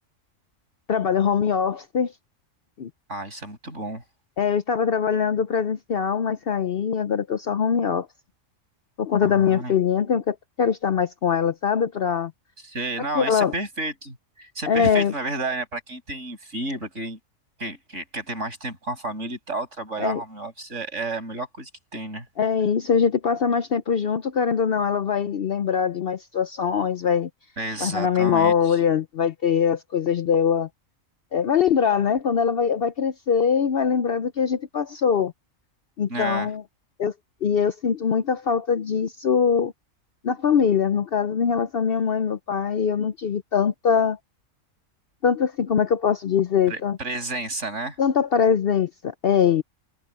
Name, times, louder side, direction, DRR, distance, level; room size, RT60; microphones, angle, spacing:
voice 1, 0.9-2.1 2.8-2.9 4.4-8.1 9.0-12.3 13.1-13.5 14.7-15.1 20.0-20.2 22.4-27.3 27.8-30.7 31.3-35.3 36.0-36.6 37.0-37.1 37.4-39.7 40.2-44.2 45.2-47.0 48.0-49.6, left 7 dB, 55° left, 0.7 m, -22 dB
voice 2, 3.1-4.0 9.2-9.7 12.6-17.2 17.6-22.3 27.6-28.8 36.1-36.5 46.7-48.0, right 2 dB, 65° right, 8.1 m, -31 dB
omnidirectional pair, 1.4 m